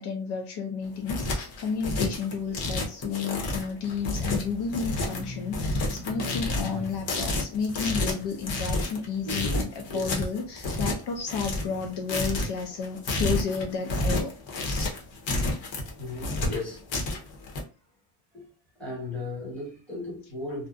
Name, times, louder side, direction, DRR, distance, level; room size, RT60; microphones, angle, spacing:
voice 1, 0.0-14.3 14.7-14.9, left 5 dB, 60° left, 0.5 m, -32 dB
sound 1, 0.8-17.6, left 2 dB, 75° left, 0.9 m, -30 dB
sound 2, 4.0-9.5 10.0-11.9, left 1 dB, 50° right, 0.6 m, -41 dB
voice 2, 9.3-10.2 16.0-16.8 18.3-18.5 18.8-20.7, left 2 dB, 5° left, 1.0 m, -36 dB
2.6 x 2.1 x 2.4 m
cardioid pair, 175°, 46 cm